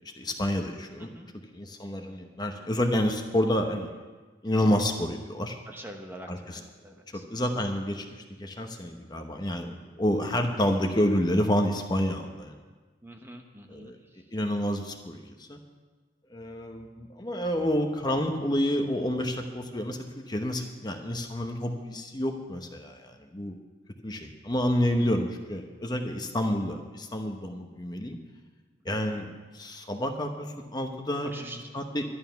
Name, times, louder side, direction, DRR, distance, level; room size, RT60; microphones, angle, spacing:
voice 1, 0.2-1.1 1.5-3.9 4.4-5.6 6.3-6.6 7.1-8.1 8.4-12.6 13.7-14.0 14.3-15.6 16.3-23.6 24.0-28.2 28.8-32.0, equal, 20° left, 4 dB, 0.9 m, -29 dB
voice 2, 1.0-1.3 5.7-7.2 13.0-13.9 26.3-26.4 28.9-29.3 31.2-31.6, right 1 dB, 10° right, 3 dB, 0.9 m, -45 dB
11.5 x 11.5 x 5.8 m, 1.4 s
head